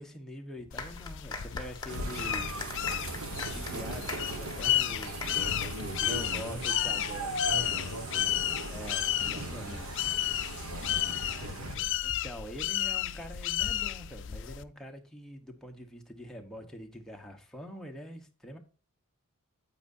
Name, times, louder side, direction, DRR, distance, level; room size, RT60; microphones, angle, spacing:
voice 1, 0.0-2.5 3.3-5.2 6.1-7.4 8.7-9.9 12.0-18.6, equal, ahead, 1.0 m, -44 dB
sound 1, 0.7-14.6, left 13 dB, 60° left, 0.4 m, -33 dB
sound 2, 0.8-6.7, left 3 dB, 20° left, 1.3 m, -42 dB
sound 3, 1.9-11.7, right 2 dB, 80° right, 1.4 m, -38 dB
voice 2, 5.3-6.6 7.4-8.6 10.6-11.9, left 1 dB, 55° right, 3.5 m, -42 dB
9.0 x 8.1 x 2.6 m
head